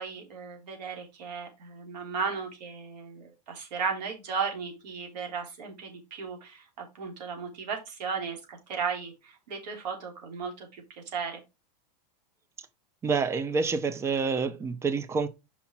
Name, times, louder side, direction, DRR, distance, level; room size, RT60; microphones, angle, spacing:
voice 1, 0.0-11.4, right 5 dB, 80° right, 3.3 m, -35 dB
voice 2, 13.0-15.3, right 5 dB, 15° right, 0.6 m, -27 dB
5.8 x 5.7 x 4.4 m
supercardioid pair, 155°, 21 cm